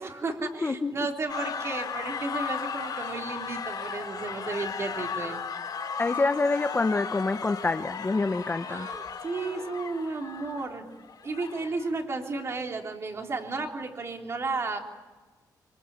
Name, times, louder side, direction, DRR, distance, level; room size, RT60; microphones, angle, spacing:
voice 1, 0.0-5.4 8.7-10.9 11.2-14.8, right 3 dB, 35° right, 3 dB, 3.5 m, -33 dB
voice 2, 0.6-0.9 6.0-8.9, left 3 dB, 25° left, 9 dB, 0.9 m, -26 dB
sound 1, 1.3-12.0, left 6 dB, 60° left, 6.3 m, -36 dB
25.5 x 25.0 x 8.9 m, 1.3 s
wide cardioid pair, 145°, 7 cm